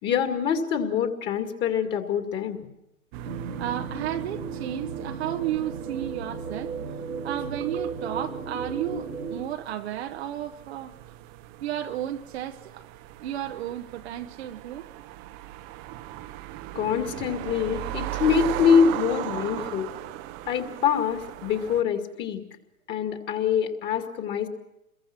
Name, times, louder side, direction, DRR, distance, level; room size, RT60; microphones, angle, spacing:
voice 1, 0.0-2.6 16.7-19.9 20.5-22.4 22.9-24.5, left 7 dB, 25° left, 2.3 m, -25 dB
sound 1, 3.1-21.8, right 14 dB, 25° right, 0.9 m, -38 dB
sound 2, 3.2-9.5, right 4 dB, 85° right, 2.0 m, -35 dB
voice 2, 3.6-6.7 7.2-10.9 11.6-12.9 13.2-14.9, right 12 dB, 45° right, 1.1 m, -33 dB
28.0 x 22.0 x 6.0 m
hypercardioid pair, 125°, 42 cm